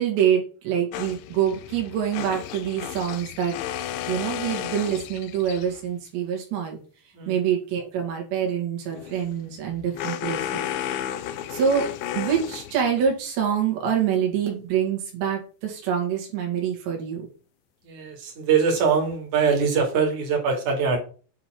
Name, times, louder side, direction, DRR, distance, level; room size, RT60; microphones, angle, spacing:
voice 1, 0.0-3.6 4.1-6.8 7.3-10.7 11.2-17.3, right 8 dB, 70° right, 1 dB, 4.2 m, -26 dB
sound 1, 0.9-5.9 8.9-13.1, left 11 dB, 85° left, 3.1 m, -33 dB
voice 2, 17.8-21.0, right 6 dB, 45° right, 1 dB, 3.5 m, -23 dB
9.3 x 3.9 x 4.6 m, 0.38 s
omnidirectional pair, 5.2 m